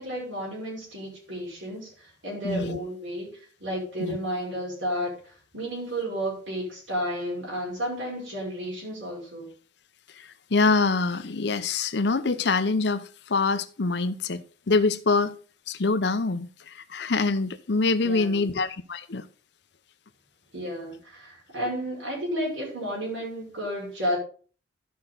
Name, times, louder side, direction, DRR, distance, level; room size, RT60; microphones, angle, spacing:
voice 1, 0.0-3.3 3.6-9.5 18.0-18.5 20.5-24.2, equal, 80° right, 5.5 m, -32 dB
voice 2, 2.4-2.8 4.0-4.2 10.5-15.4 15.7-19.2, left 3 dB, 60° left, 0.7 m, -25 dB
13.0 x 5.6 x 3.9 m
head